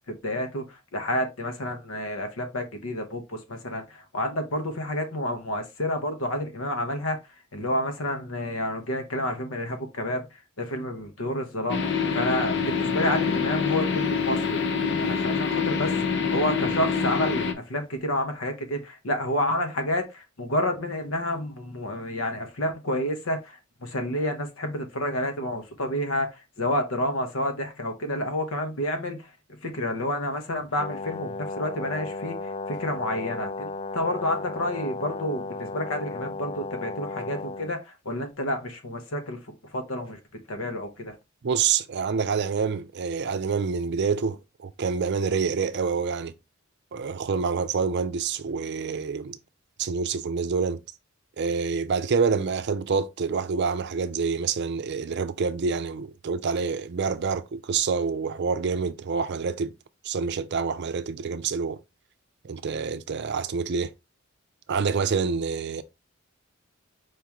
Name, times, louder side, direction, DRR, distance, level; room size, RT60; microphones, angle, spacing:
voice 1, 0.1-7.2 7.5-14.6 15.0-39.4 39.7-40.2 40.5-41.2, left 1 dB, 80° left, 1.1 m, -29 dB
sound 1, 11.7-17.5, left 5 dB, 60° left, 0.7 m, -26 dB
Brass instrument, 30.8-37.8, left 3 dB, 30° left, 0.3 m, -35 dB
voice 2, 41.4-46.3 46.9-49.4 49.8-50.8 51.4-59.7 60.0-61.8 62.4-63.9 64.7-65.8, right 5 dB, 55° right, 0.5 m, -27 dB
4.9 x 3.6 x 3.0 m
head